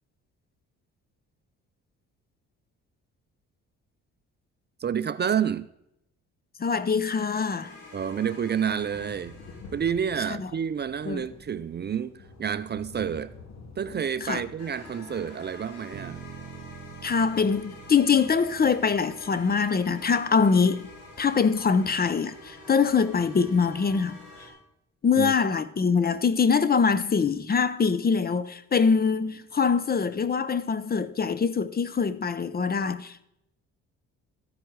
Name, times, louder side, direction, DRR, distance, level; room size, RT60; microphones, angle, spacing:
voice 1, 4.8-5.7 7.9-9.4 9.7-13.3 13.8-16.2 25.2-25.3, right 8 dB, 35° right, 0.5 m, -29 dB
voice 2, 6.6-7.7 10.4-10.5 11.1-11.3 14.2-14.4 17.0-20.9 21.2-24.2 25.0-33.2, left 5 dB, 30° left, 0.7 m, -24 dB
sound 1, 7.1-24.5, left 3 dB, 60° left, 2.3 m, -51 dB
sound 2, 7.6-10.3 14.6-24.5, left 3 dB, 80° left, 4.5 m, -47 dB
sound 3, 15.9-20.0, right 10 dB, 80° right, 0.8 m, -46 dB
13.5 x 10.0 x 4.7 m
cardioid pair, 90°, 30 cm